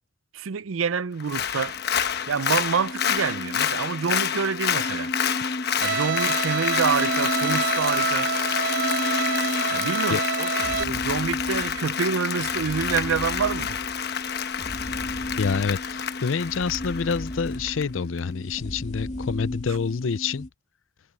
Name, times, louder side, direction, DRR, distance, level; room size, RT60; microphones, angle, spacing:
voice 1, 0.3-1.7 2.3-5.1 5.8-8.3 9.7-10.5 10.8-13.8, right 6 dB, 85° right, 0.5 m, -27 dB
Applause, 1.2-17.8 18.2-18.3, left 8 dB, 55° left, 1.1 m, -28 dB
sound 1, 1.7-20.5, left 1 dB, 35° left, 2.1 m, -34 dB
Bowed string instrument, 5.8-10.8, right 5 dB, 65° right, 1.2 m, -27 dB
voice 2, 15.4-20.5, left 5 dB, 80° left, 0.6 m, -27 dB
head